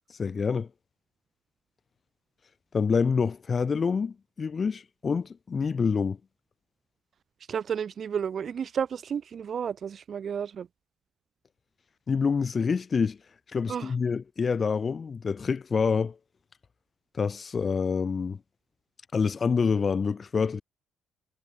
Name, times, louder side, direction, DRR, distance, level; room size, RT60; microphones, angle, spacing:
voice 1, 0.2-0.7 2.7-6.2 12.1-13.2 13.5-16.2 17.2-18.4 19.1-20.6, left 5 dB, 40° left, 1.9 m, -27 dB
voice 2, 7.5-10.7 13.7-13.9, right 7 dB, 55° right, 2.1 m, -32 dB
cardioid pair, 90°, 0 cm